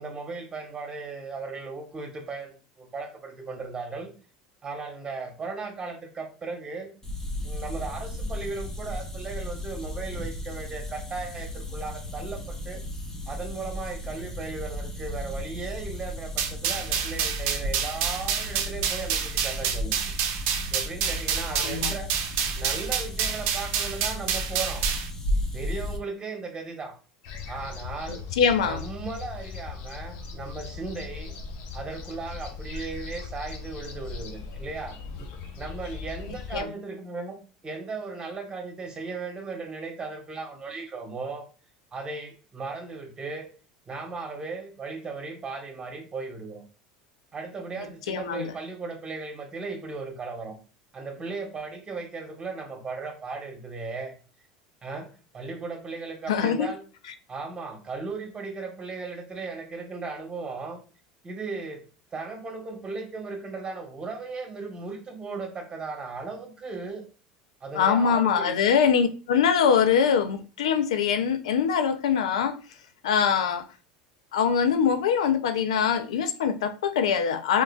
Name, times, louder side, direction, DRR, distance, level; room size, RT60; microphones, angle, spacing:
voice 1, 0.0-4.1 4.6-6.9 7.4-12.8 13.3-20.1 20.7-22.1 22.5-24.9 25.5-27.0 27.5-28.2 28.6-31.3 31.7-35.0 35.5-37.4 37.6-41.5 41.9-43.5 43.9-46.6 47.3-50.6 50.9-54.1 54.8-55.1 55.3-56.8 57.3-60.8 61.2-61.8 62.1-67.0 67.6-68.6, right 4 dB, 25° right, 1.6 m, -36 dB
sound 1, 7.0-26.0, left 1 dB, 20° left, 1.2 m, -35 dB
sound 2, 16.4-25.1, right 8 dB, 65° right, 0.8 m, -28 dB
voice 2, 21.5-21.9 28.1-28.8 36.5-36.7 48.1-48.5 56.3-56.7 67.8-72.6 73.0-73.6 74.3-77.6, left 7 dB, 85° left, 0.5 m, -23 dB
sound 3, 27.2-36.6, left 5 dB, 65° left, 0.9 m, -39 dB
3.7 x 3.7 x 2.4 m
hypercardioid pair, 85°, 3 cm